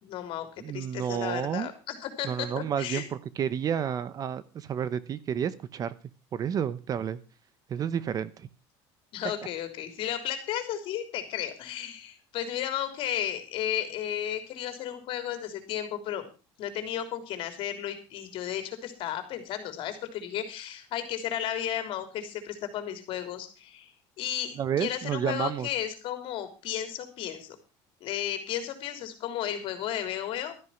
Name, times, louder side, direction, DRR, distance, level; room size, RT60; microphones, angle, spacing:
voice 1, 0.0-3.1 9.1-16.3 16.6-23.9 24.2-27.6 28.0-30.5, left 10 dB, 55° left, 8 dB, 3.4 m, -34 dB
voice 2, 0.6-1.7 2.2-5.9 6.3-7.2 7.7-8.5 24.6-25.7, right 8 dB, 35° right, 17 dB, 0.9 m, -30 dB
13.0 x 10.5 x 5.8 m, 0.33 s
cardioid pair, 140°, 11 cm